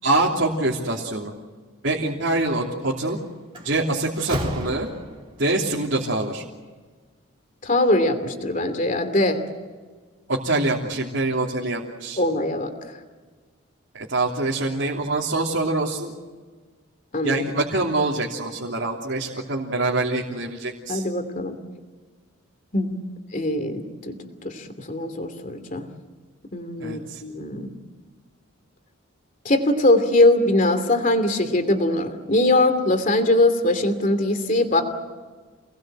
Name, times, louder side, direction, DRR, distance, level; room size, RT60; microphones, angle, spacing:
voice 1, 0.0-1.3 1.8-3.2 3.6-4.9 5.4-6.4 10.3-12.2 13.9-16.1 17.2-21.0 26.8-27.2, right 2 dB, 60° right, -3 dB, 3.1 m, -25 dB
Slam, 2.9-3.1 3.5-5.4, equal, 25° right, 3.6 m, -32 dB
voice 2, 7.6-9.4 12.2-12.7 17.1-17.4 20.9-21.6 22.7-23.0 23.3-24.2 24.4-25.9 26.5-27.7 29.4-34.8, left 1 dB, 40° left, 8 dB, 2.7 m, -21 dB
28.0 x 20.0 x 7.8 m, 1.4 s
head